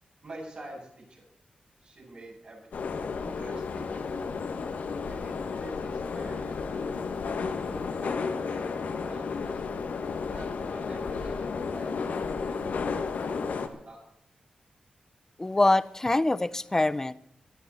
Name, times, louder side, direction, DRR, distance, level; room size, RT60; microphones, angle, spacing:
voice 1, 0.2-1.2 1.8-4.3 5.1-9.6 10.3-13.6 13.8-14.0, right 1 dB, 50° right, 7.6 m, -47 dB
sound 1, 2.7-13.7, left 5 dB, 80° left, 1.5 m, -32 dB
voice 2, 15.4-17.1, left 2 dB, 20° left, 0.6 m, -24 dB
20.0 x 12.5 x 4.3 m
wide cardioid pair, 105°, 3 cm